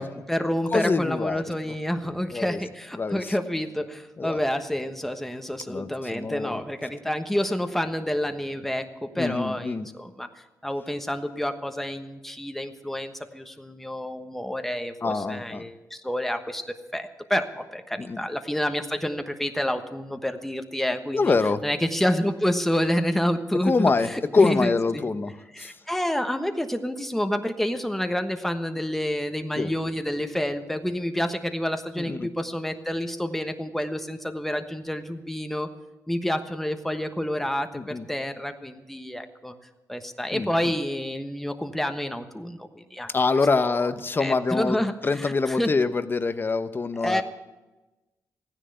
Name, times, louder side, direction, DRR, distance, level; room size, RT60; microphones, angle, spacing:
voice 1, 0.0-10.3 10.6-21.3 21.6-25.0 25.5-35.7 36.1-39.5 39.9-43.1 43.6-43.9 44.2-45.7 47.0-47.2, equal, 5° left, 7 dB, 1.2 m, -28 dB
voice 2, 0.7-1.4 2.3-2.6 3.0-3.2 4.2-4.4 5.7-6.6 9.2-9.9 15.0-15.6 18.0-18.2 21.1-21.6 23.6-25.3 25.6-25.8 29.6-29.7 32.0-32.3 37.7-38.1 40.3-40.7 43.1-47.2, left 4 dB, 35° left, 11 dB, 0.9 m, -25 dB
15.0 x 10.0 x 8.0 m, 1.1 s
cardioid pair, 80°, 7 cm